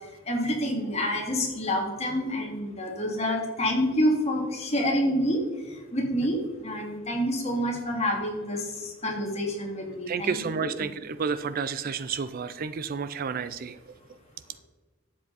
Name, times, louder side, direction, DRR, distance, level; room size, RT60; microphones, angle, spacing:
voice 1, 0.0-10.7, equal, 30° left, 0 dB, 2.4 m, -28 dB
voice 2, 10.1-13.8, right 5 dB, 45° right, 14 dB, 0.4 m, -31 dB
12.0 x 7.5 x 4.1 m, 1.3 s
head